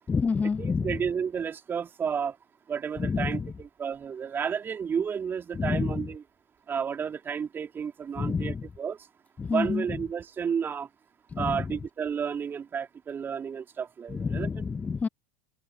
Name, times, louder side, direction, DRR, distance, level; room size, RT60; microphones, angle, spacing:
voice 1, 0.1-1.0 3.0-3.5 5.5-6.1 8.2-8.6 9.4-10.0 11.3-11.8 14.1-15.1, left 5 dB, 20° left, 1.1 m, -29 dB
voice 2, 0.6-2.3 2.7-6.2 6.7-9.0 9.5-10.9 11.4-14.5, right 7 dB, 25° right, 3.3 m, -31 dB
figure-of-eight pair, 75°, 8 cm